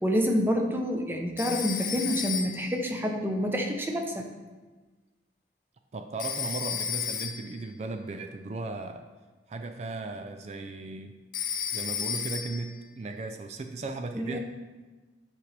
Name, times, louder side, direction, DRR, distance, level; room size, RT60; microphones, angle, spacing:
voice 1, 0.0-4.3 14.1-14.4, equal, 10° right, 2 dB, 0.7 m, -28 dB
Telephone, 1.4-2.8 6.2-7.6 11.3-12.7, left 8 dB, 45° left, 0.5 m, -33 dB
voice 2, 5.9-9.0 9.5-11.2 11.7-14.4, right 3 dB, 40° right, 6 dB, 0.3 m, -36 dB
8.4 x 5.2 x 3.3 m, 1.3 s
head